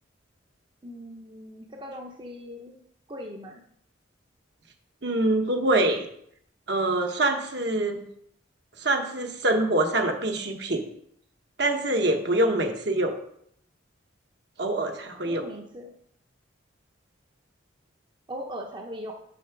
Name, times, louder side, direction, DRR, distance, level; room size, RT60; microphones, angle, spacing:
voice 1, 0.8-2.7 3.1-3.6 15.2-15.9 18.3-19.1, equal, 25° right, 1 dB, 0.8 m, -39 dB
voice 2, 5.0-6.1 6.7-8.0 8.8-10.8 11.6-13.1 14.6-15.4, right 2 dB, 60° right, 4 dB, 1.1 m, -25 dB
7.1 x 5.8 x 5.9 m, 0.69 s
head